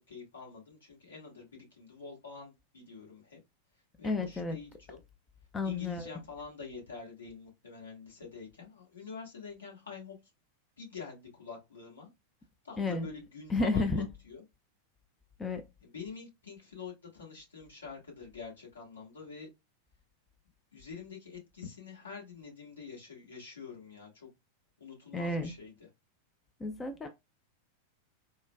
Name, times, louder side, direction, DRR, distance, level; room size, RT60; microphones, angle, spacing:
voice 1, 0.1-3.4 4.0-5.0 5.6-10.2 10.8-12.1 12.6-14.4 15.8-19.5 20.7-24.3 24.8-25.9, left 5 dB, 70° left, 1.4 m, -46 dB
voice 2, 4.0-4.6 5.5-6.1 12.8-13.1 13.5-14.1 15.4-15.6 25.1-25.5 26.6-27.1, left 3 dB, 15° left, 0.4 m, -31 dB
4.2 x 2.2 x 2.3 m
figure-of-eight pair, 90°, 0 cm